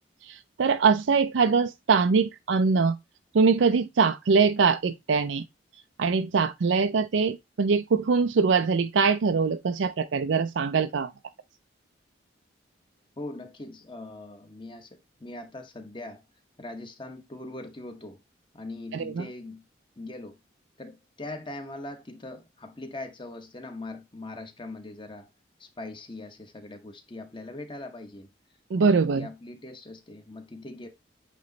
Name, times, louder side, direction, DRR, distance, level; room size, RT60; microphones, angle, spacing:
voice 1, 0.3-3.0 3.3-5.4 6.0-11.1 18.9-19.2 28.7-29.3, right 5 dB, 75° right, 0.4 m, -23 dB
voice 2, 13.2-16.2 16.6-18.2 18.5-19.6 20.0-20.4 20.8-25.3 25.6-28.3 28.9-30.9, left 2 dB, 25° left, 1.0 m, -41 dB
8.4 x 3.1 x 3.9 m
head